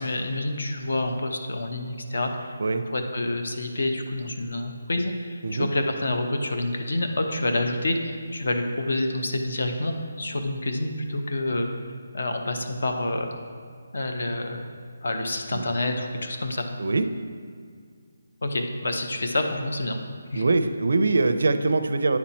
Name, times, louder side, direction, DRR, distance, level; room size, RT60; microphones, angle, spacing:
voice 1, 0.0-2.6 2.9-11.7 12.1-13.3 13.9-14.7 15.0-16.7 18.4-20.0 20.3-20.4, left 2 dB, 65° left, 5 dB, 0.8 m, -28 dB
voice 2, 20.3-22.2, right 3 dB, 65° right, 9 dB, 0.4 m, -23 dB
9.5 x 4.3 x 4.3 m, 2.1 s
hypercardioid pair, 175°, 0 cm